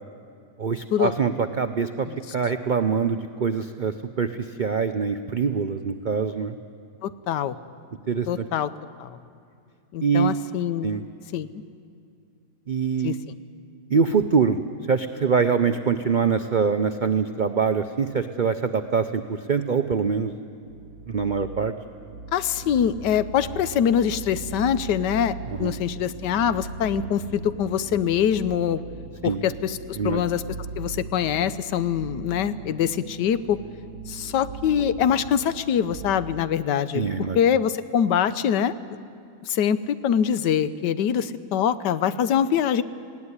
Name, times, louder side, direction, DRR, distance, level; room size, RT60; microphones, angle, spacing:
voice 1, 0.6-2.1 2.3-6.6 8.1-8.5 10.0-10.3 10.8-11.0 12.7-13.2 13.9-14.6 14.9-20.3 21.1-21.7 25.6-25.7 29.2-29.4 30.0-30.2 36.9-37.4, right 5 dB, 80° right, 9 dB, 0.4 m, -24 dB
voice 2, 7.0-7.5 8.3-8.7 9.0-9.2 9.9-11.0 11.3-11.6 13.0-13.1 22.3-28.8 29.2-30.4 30.8-33.6 34.1-37.1 37.3-38.7 39.4-42.8, left 8 dB, 85° left, 14 dB, 1.4 m, -24 dB
sound 1, 20.7-36.4, right 4 dB, 60° right, 1.4 m, -39 dB
19.5 x 16.5 x 9.8 m, 2.3 s
omnidirectional pair, 1.8 m